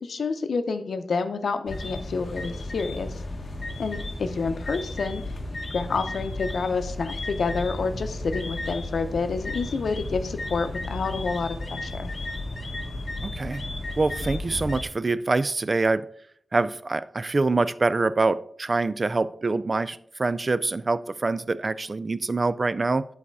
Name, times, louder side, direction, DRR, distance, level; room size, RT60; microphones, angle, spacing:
voice 1, 0.0-3.1 3.8-5.2 5.7-12.1, left 4 dB, 90° left, 9 dB, 0.7 m, -28 dB
sound 1, 1.7-14.8, left 2 dB, 45° left, 1.1 m, -34 dB
voice 2, 13.2-13.6 14.0-16.0 16.5-23.1, right 3 dB, 35° right, 15 dB, 0.3 m, -25 dB
10.5 x 4.1 x 4.6 m, 0.63 s
wide cardioid pair, 130°, 0 cm